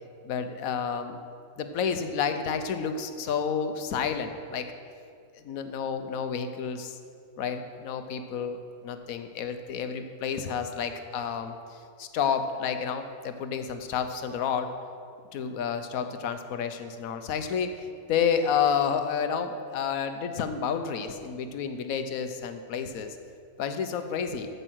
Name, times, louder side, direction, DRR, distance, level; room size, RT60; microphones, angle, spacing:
voice 1, 0.2-1.2 1.6-4.7 5.4-7.0 7.4-8.6 8.8-14.7 15.3-23.2 23.6-24.5, left 7 dB, 85° left, 8 dB, 1.2 m, -30 dB
13.5 x 5.4 x 6.2 m, 2.4 s
omnidirectional pair, 1.4 m